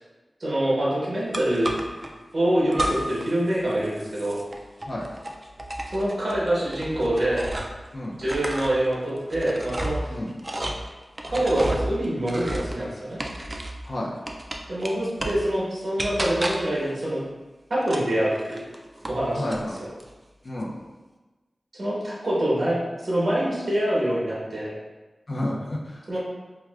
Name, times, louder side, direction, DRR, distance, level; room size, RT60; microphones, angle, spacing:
voice 1, 0.4-1.8 2.3-4.4 5.9-7.5 8.2-10.1 11.3-13.2 14.7-17.2 17.7-18.6 19.1-19.6 21.7-24.7 26.1-26.2, right 1 dB, 60° right, -7 dB, 1.1 m, -25 dB
sound 1, 1.3-2.1 2.7-3.3 3.6-7.9 8.2-13.9 14.3-15.5 16.0-16.8 17.8-19.2 19.5-20.1, right 1 dB, 30° right, 0.3 m, -32 dB
voice 2, 19.3-19.8 20.4-20.7 25.3-26.2, left 1 dB, 50° left, -4 dB, 0.5 m, -30 dB
4.5 x 2.2 x 2.4 m, 1.2 s
wide cardioid pair, 95°, 0 cm